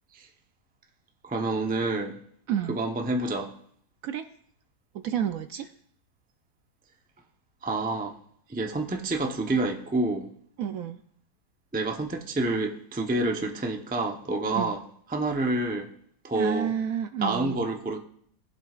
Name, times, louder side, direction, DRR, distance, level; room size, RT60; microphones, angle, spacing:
voice 1, 1.2-2.2 2.7-3.5 7.6-8.2 8.5-10.3 11.7-14.8 15.1-15.9 16.2-16.7 17.2-18.0, right 2 dB, 10° right, 0.4 m, -28 dB
voice 2, 2.5-2.8 4.0-4.3 4.9-5.7 10.6-11.0 14.5-14.8 16.3-17.5, right 9 dB, 70° right, 0.9 m, -30 dB
19.0 x 7.6 x 2.4 m
omnidirectional pair, 1.8 m